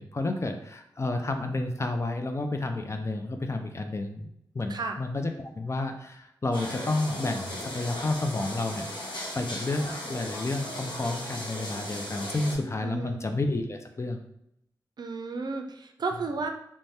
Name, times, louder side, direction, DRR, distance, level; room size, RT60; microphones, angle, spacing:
voice 1, 0.0-8.9 9.3-14.2, left 2 dB, 35° left, 5 dB, 0.5 m, -31 dB
sound 1, 6.5-12.5, left 1 dB, 75° left, 0.9 m, -37 dB
voice 2, 12.8-13.2 15.0-16.5, right 4 dB, 60° right, 4 dB, 0.4 m, -33 dB
2.6 x 2.1 x 3.3 m, 0.77 s
cardioid pair, 45°, 8 cm